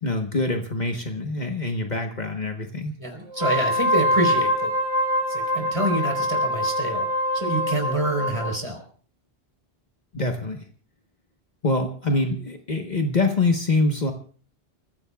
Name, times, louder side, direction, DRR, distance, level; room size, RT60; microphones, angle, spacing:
voice 1, 0.0-2.9 10.1-10.6 11.6-14.1, left 2 dB, 45° left, 4 dB, 1.2 m, -25 dB
voice 2, 3.0-4.7 5.3-7.1 7.3-8.8, right 1 dB, 30° right, 2 dB, 3.9 m, -27 dB
Wind instrument woodwind instrument, 3.3-8.6, equal, 85° right, 2.3 m, -24 dB
30.0 x 15.0 x 2.3 m, 0.43 s
omnidirectional pair, 1.1 m